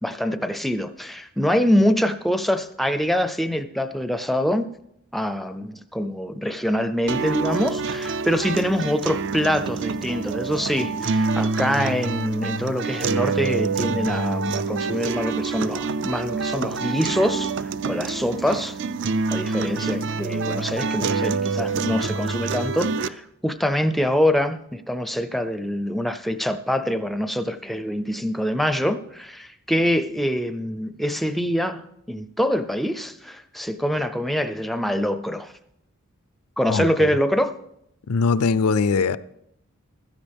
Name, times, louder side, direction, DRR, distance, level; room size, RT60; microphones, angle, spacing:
voice 1, 0.0-4.7 5.1-18.8 19.3-35.5 36.6-37.5, equal, ahead, 0.5 m, -25 dB
sound 1, 7.1-23.1, right 4 dB, 55° right, 0.4 m, -26 dB
voice 2, 36.7-37.1 38.1-39.2, left 4 dB, 80° left, 0.5 m, -21 dB
15.5 x 13.0 x 3.5 m
head